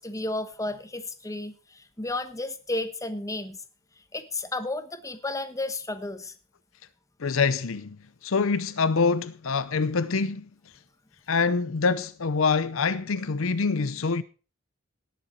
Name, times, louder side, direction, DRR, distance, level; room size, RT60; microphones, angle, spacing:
voice 1, 0.0-3.6 4.1-6.3, left 2 dB, 15° left, 1.1 m, -33 dB
voice 2, 7.2-10.5 11.3-14.2, left 4 dB, 70° left, 0.7 m, -25 dB
18.5 x 7.0 x 4.3 m
head